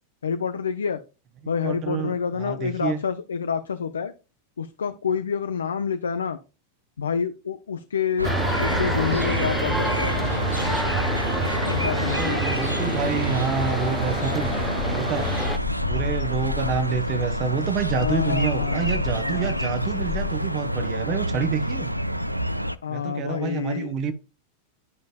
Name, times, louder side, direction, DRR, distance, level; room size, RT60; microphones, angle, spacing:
voice 1, 0.2-1.0 1.5-4.1 4.6-6.4 7.0-8.3 8.6-10.2 11.7-12.4 18.0-18.9 19.2-19.6 22.8-23.9, left 6 dB, 70° left, 0.4 m, -28 dB
voice 2, 1.4-3.0 12.1-14.5 14.9-15.4 15.8-21.9 22.9-24.1, right 6 dB, 35° right, 0.7 m, -28 dB
sound 1, 8.2-15.6, right 1 dB, ahead, 0.3 m, -28 dB
sound 2, 8.2-22.8, equal, 90° right, 0.3 m, -27 dB
Dog / Bird, 14.3-20.5, left 8 dB, 45° left, 0.8 m, -35 dB
11.0 x 5.1 x 2.3 m
figure-of-eight pair, 90°, 0 cm